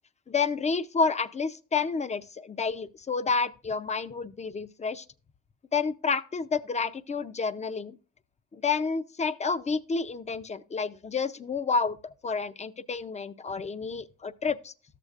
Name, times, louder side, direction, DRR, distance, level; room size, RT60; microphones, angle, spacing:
voice 1, 0.3-5.0 5.7-8.0 8.5-12.0 12.2-14.7, left 5 dB, 25° left, 0.5 m, -29 dB
13.5 x 6.6 x 2.4 m
cardioid pair, 90°, 30 cm